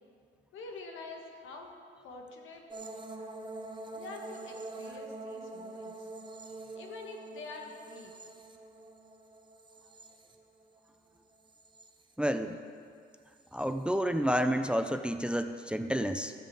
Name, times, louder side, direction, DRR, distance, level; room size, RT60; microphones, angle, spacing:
voice 1, 0.5-1.8 2.0-2.7 3.9-6.1 6.7-8.1, left 3 dB, 80° left, 2 dB, 1.6 m, -46 dB
sound 1, 2.7-10.9 11.3-12.1 13.4-13.7, right 2 dB, 25° right, 0.9 m, -45 dB
voice 2, 12.2-12.6 13.5-16.3, equal, 5° right, 9 dB, 0.4 m, -30 dB
12.5 x 5.0 x 7.6 m, 2.2 s
cardioid pair, 90°, 20 cm